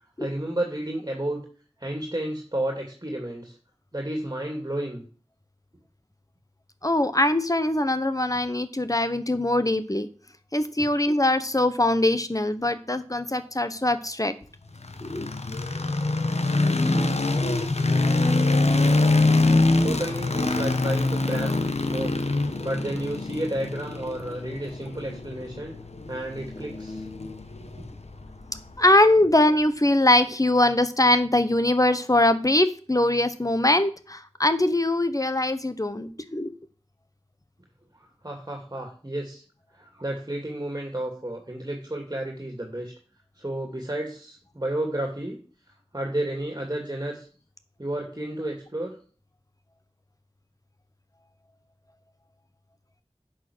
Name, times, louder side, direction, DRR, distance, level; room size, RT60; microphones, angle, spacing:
voice 1, 0.2-1.4 1.8-3.6 3.9-5.0 19.5-22.2 22.6-25.7 26.1-27.1 27.8-27.9 37.9-39.4 39.7-42.9 43.4-45.4 45.9-47.3 47.8-49.0, right 1 dB, 35° right, 1 dB, 2.4 m, -32 dB
voice 2, 6.8-10.1 10.5-14.3 15.0-15.3 28.8-36.5, left 1 dB, 30° left, 11 dB, 1.0 m, -22 dB
sound 1, 14.8-28.9, left 2 dB, 75° left, 1.2 m, -24 dB
10.5 x 6.4 x 6.2 m, 0.40 s
wide cardioid pair, 45°, 11 cm